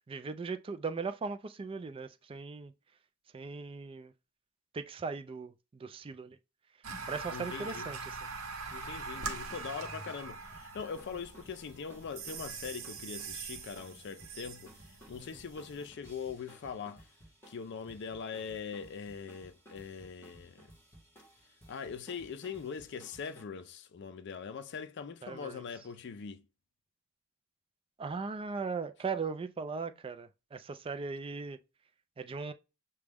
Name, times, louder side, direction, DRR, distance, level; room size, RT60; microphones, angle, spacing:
voice 1, 0.1-2.7 3.3-4.1 4.7-6.4 7.1-8.2 15.2-15.3 25.2-25.6 28.0-31.6 32.2-32.5, right 4 dB, 25° right, 0.3 m, -38 dB
sound 1, 6.8-15.9, right 4 dB, 75° right, 0.9 m, -43 dB
voice 2, 7.3-7.9 8.7-17.0 17.5-20.7 21.7-26.4, left 6 dB, 55° left, 0.4 m, -42 dB
sound 2, 8.7-23.4, right 1 dB, 10° left, 1.4 m, -58 dB
6.1 x 2.2 x 3.4 m
head